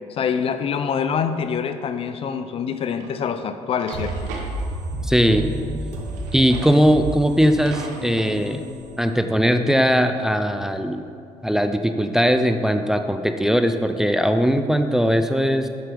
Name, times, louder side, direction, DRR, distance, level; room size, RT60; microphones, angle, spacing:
voice 1, 0.1-4.2 8.3-8.4, left 7 dB, 50° left, 10 dB, 0.5 m, -25 dB
Drawer open or close, 3.0-3.1 3.6-4.5 6.1-6.8 7.2-7.3 7.6-8.3, right 4 dB, 85° right, 1.2 m, -38 dB
sound 1, 3.9-9.6, right 1 dB, 70° right, 1.4 m, -32 dB
voice 2, 5.0-5.4 6.3-8.6 9.0-11.0 11.4-15.7, equal, 5° right, 7 dB, 0.5 m, -19 dB
7.9 x 5.9 x 5.1 m, 2.4 s
cardioid pair, 90°, 13 cm